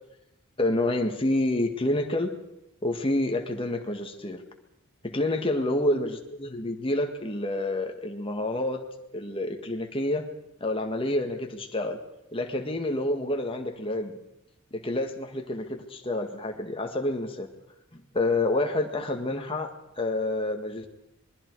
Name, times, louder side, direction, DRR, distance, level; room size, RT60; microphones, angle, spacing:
voice 1, 0.6-2.3 2.8-4.4 5.0-8.8 9.1-10.3 10.6-12.0 12.3-14.2 14.7-17.5 17.9-20.9, left 1 dB, 25° left, 3 dB, 2.0 m, -28 dB
26.5 x 21.5 x 4.8 m, 0.87 s
head